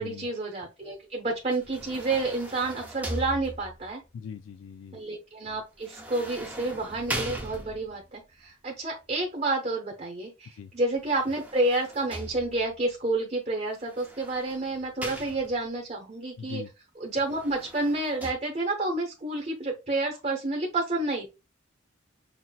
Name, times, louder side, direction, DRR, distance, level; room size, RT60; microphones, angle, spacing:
voice 1, 0.0-4.0 4.9-16.6 17.0-21.3, right 2 dB, 35° right, 0.9 m, -29 dB
sound 1, 1.5-3.9 5.8-8.1 10.9-12.8 13.8-15.8 17.1-18.3, right 1 dB, 10° right, 0.6 m, -39 dB
voice 2, 4.1-5.0 10.5-10.7 16.4-16.7, left 6 dB, 80° left, 0.3 m, -40 dB
5.8 x 2.8 x 2.2 m
head